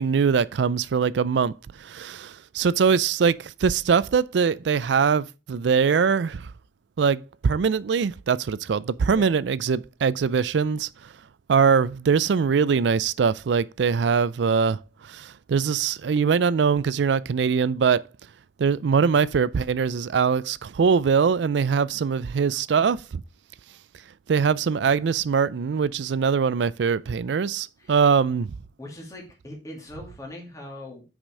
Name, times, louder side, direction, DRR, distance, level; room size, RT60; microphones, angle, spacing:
voice 1, 0.0-6.5 7.0-10.9 11.5-14.8 15.1-18.1 18.6-23.0 24.3-28.5, right 6 dB, 85° right, 0.4 m, -22 dB
voice 2, 22.5-22.8 27.8-27.9 28.8-31.0, left 1 dB, 20° left, 2.2 m, -41 dB
6.1 x 5.0 x 5.4 m
head